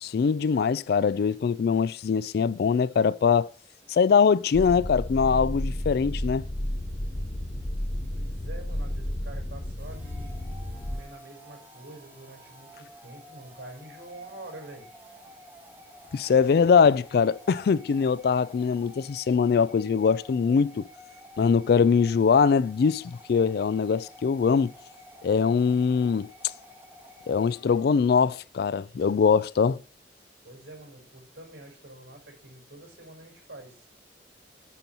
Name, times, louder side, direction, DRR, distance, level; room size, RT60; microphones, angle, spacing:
voice 1, 0.0-3.5 3.9-6.4 16.1-20.9 21.4-24.7 25.2-26.3 27.3-29.8, left 6 dB, 55° left, 0.3 m, -22 dB
sound 1, 4.5-11.0, left 1 dB, 30° left, 0.8 m, -32 dB
voice 2, 8.1-10.3 10.9-14.9 30.4-33.9, right 2 dB, 65° right, 5.0 m, -46 dB
sound 2, 9.8-28.0, left 1 dB, 10° right, 1.4 m, -51 dB
9.2 x 4.6 x 5.3 m
head